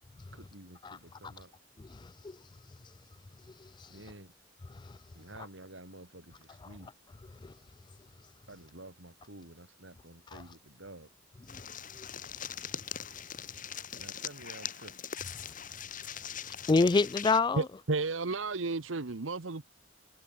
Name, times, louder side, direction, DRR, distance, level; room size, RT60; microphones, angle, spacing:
voice 1, 0.3-1.5 3.9-4.3 5.1-6.9 8.5-11.1 14.0-15.0, right 1 dB, 70° right, 5.5 m, -50 dB
voice 2, 1.9-2.4 3.6-3.9 4.8-4.9 7.4-7.5 10.3-10.4 11.5-11.6 16.7-17.7, left 3 dB, 25° left, 0.3 m, -27 dB
sound 1, 11.5-17.4, left 8 dB, 45° left, 5.8 m, -41 dB
voice 3, 17.5-19.6, right 3 dB, 85° right, 1.1 m, -32 dB
head